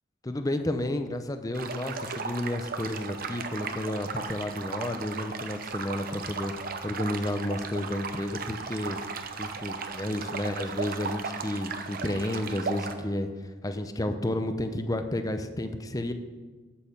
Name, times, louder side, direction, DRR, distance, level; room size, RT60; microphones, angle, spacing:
voice 1, 0.2-6.5 6.8-9.0 9.4-13.3 13.6-16.1, left 1 dB, 20° left, 8 dB, 0.7 m, -31 dB
sound 1, 1.5-12.9, right 5 dB, 50° right, 0.8 m, -36 dB
8.5 x 7.8 x 6.6 m, 1.4 s
head